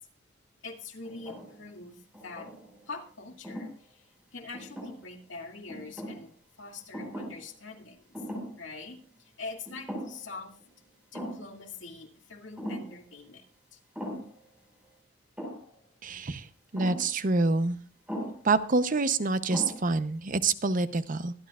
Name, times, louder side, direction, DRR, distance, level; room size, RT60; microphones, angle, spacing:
voice 1, 0.6-2.0 2.2-2.5 2.9-4.0 4.3-6.3 6.6-8.0 8.6-10.5 11.1-13.4 13.7-13.8, left 3 dB, 90° left, 2 dB, 2.3 m, -43 dB
sound 1, 1.0-1.6 2.1-2.9 3.4-3.7 4.5-5.2 5.7-6.3 6.9-7.5 7.7-7.8 8.1-8.7 9.0-9.1 9.7-10.3 10.6-10.7 11.1-11.5 12.6-13.0 14.0-14.4 15.4-15.7 16.8-17.1 18.1-18.5 19.1-19.2 19.5-20.0, equal, 5° right, 5.3 m, -39 dB
voice 2, 16.0-16.5 16.7-17.8 18.4-21.3, right 3 dB, 45° right, 12 dB, 0.8 m, -26 dB
24.5 x 11.0 x 2.4 m, 0.37 s
head